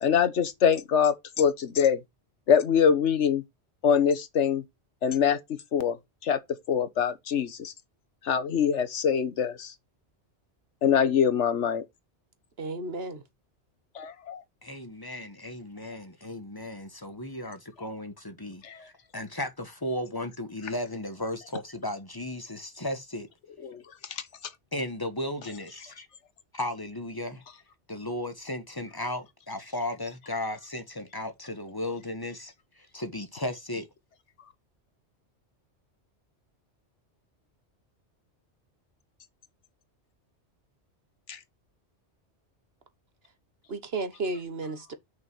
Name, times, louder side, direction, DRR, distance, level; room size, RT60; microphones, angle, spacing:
voice 1, 0.0-2.0 2.5-3.4 3.8-4.6 5.0-5.4 5.7-6.0 6.2-6.4 6.7-7.7 8.3-9.7 10.8-11.8 14.0-14.4 18.6-18.8 23.6-23.8, left 7 dB, 85° left, 1.3 m, -24 dB
voice 2, 12.6-13.2 43.7-44.9, right 3 dB, 60° right, 1.5 m, -33 dB
voice 3, 14.6-23.3 24.7-25.9 26.5-27.4 27.9-32.5 32.9-33.8, left 1 dB, 20° left, 1.4 m, -35 dB
6.6 x 5.6 x 6.1 m
omnidirectional pair, 1.2 m